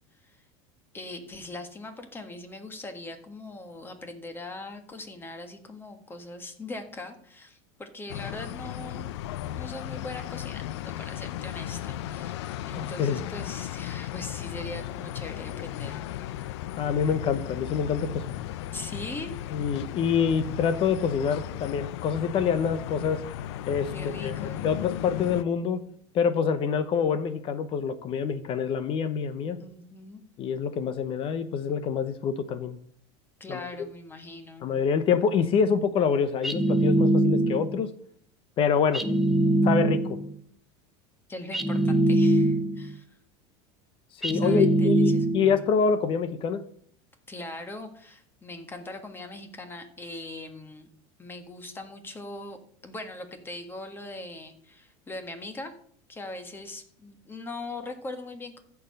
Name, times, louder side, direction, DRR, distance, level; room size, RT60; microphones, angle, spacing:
voice 1, 0.9-9.1 9.6-16.4 18.7-19.3 23.9-24.7 29.6-30.2 33.4-34.7 41.3-43.0 44.3-45.2 47.3-50.9 51.2-52.6 52.8-55.7 56.1-58.6, left 2 dB, 15° left, 7 dB, 1.4 m, -41 dB
sound 1, 8.1-25.4, left 12 dB, 85° left, 0.5 m, -36 dB
voice 2, 16.8-18.5 19.5-23.2 23.7-25.8 26.1-29.6 30.4-32.8 33.5-33.6 34.6-37.9 38.6-39.0 39.6-40.2 44.1-46.6, left 6 dB, 40° left, 12 dB, 0.8 m, -26 dB
sound 2, 36.4-37.8 38.9-40.3 41.5-42.9 44.2-45.6, right 2 dB, ahead, 0.9 m, -22 dB
14.0 x 4.7 x 6.5 m, 0.62 s
supercardioid pair, 130°, 14 cm